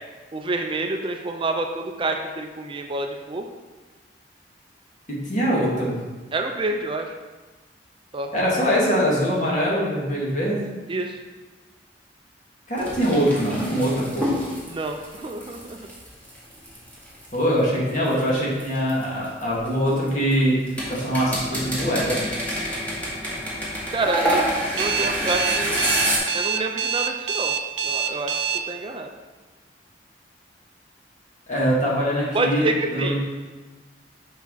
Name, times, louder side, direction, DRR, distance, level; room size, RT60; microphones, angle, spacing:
voice 1, 0.3-3.5 6.3-7.1 8.1-8.3 10.9-11.2 14.7-15.9 23.9-24.5 24.7-25.8 26.3-27.6 27.8-28.4 28.7-29.1 32.3-33.1, right 2 dB, 30° right, 4 dB, 0.5 m, -27 dB
voice 2, 5.1-6.0 8.3-10.6 12.7-14.3 17.3-20.6 20.9-22.2 31.5-33.2, equal, 45° left, -5 dB, 2.2 m, -23 dB
sound 1, 12.8-17.3 18.1-20.3 20.7-26.2, equal, 10° left, 1.8 m, -27 dB
Alarm, 24.8-28.6, right 7 dB, 90° right, 0.6 m, -25 dB
7.3 x 5.7 x 4.0 m, 1.3 s
head